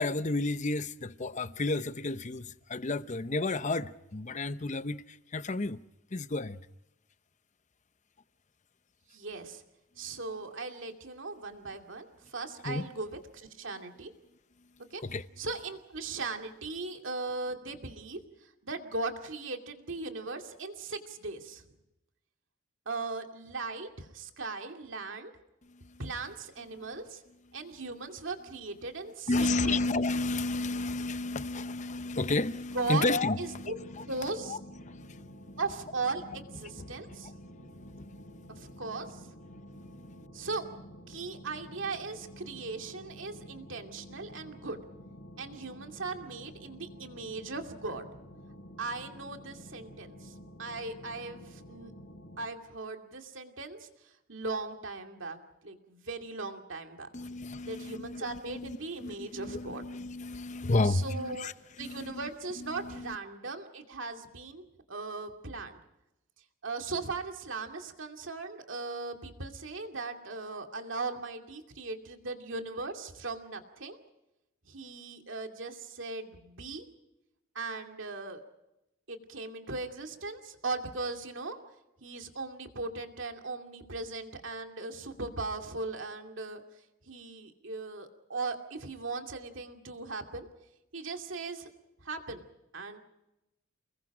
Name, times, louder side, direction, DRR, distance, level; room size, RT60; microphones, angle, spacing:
voice 1, 0.0-5.8 6.1-6.6 12.6-12.9 15.0-15.2 25.7-26.0 26.7-26.9 29.3-35.3 36.8-38.1 39.8-40.3 57.1-61.5 61.8-62.3 62.6-63.2, left 2 dB, 35° left, 0.7 m, -32 dB
voice 2, 9.1-9.6 10.0-14.1 14.9-15.0 15.4-21.6 22.9-25.3 26.0-27.2 27.5-29.8 32.7-33.1 33.4-33.8 34.1-34.6 35.6-37.8 38.5-39.2 40.3-40.7 41.1-44.8 45.4-48.0 48.8-51.9 52.4-53.9 54.3-55.4 55.6-57.1 57.6-59.8 60.8-61.5 61.8-65.8 66.6-74.0 74.6-76.9 77.5-78.4 79.1-81.6 82.0-86.6 87.0-90.5 90.9-91.7 92.0-92.4 92.7-93.0, right 3 dB, 60° right, 2.5 m, -38 dB
sound 1, 32.7-52.5, equal, 55° left, 4.4 m, -50 dB
30.0 x 21.0 x 4.9 m
head